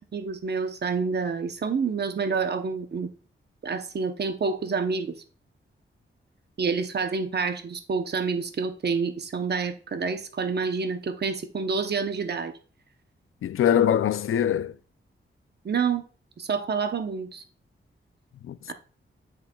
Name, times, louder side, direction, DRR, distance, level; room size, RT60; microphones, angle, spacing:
voice 1, 0.1-3.1 3.6-5.2 6.6-12.5 15.6-16.0 16.4-17.4 18.7-18.8, right 5 dB, 50° right, 0.8 m, -28 dB
voice 2, 13.4-14.8 18.4-18.7, left 9 dB, 80° left, 0.4 m, -23 dB
7.7 x 6.1 x 2.3 m
wide cardioid pair, 110°, 21 cm